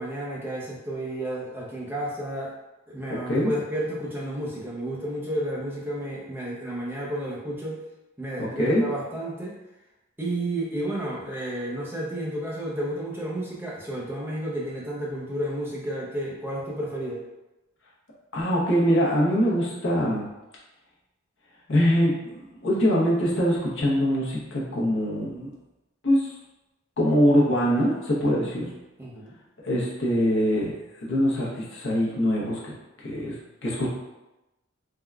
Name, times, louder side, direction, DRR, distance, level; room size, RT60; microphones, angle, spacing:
voice 1, 0.0-2.5 2.9-7.8 8.2-9.6 10.2-17.2 29.0-29.3, right 1 dB, 10° right, -5 dB, 0.5 m, -31 dB
voice 2, 18.3-20.3 21.7-22.3 22.6-25.5 26.0-26.3 27.0-28.7 29.6-30.7 31.0-32.7 33.0-33.3 33.6-33.9, equal, 65° left, -4 dB, 0.8 m, -23 dB
3.5 x 2.2 x 2.3 m, 1.0 s
head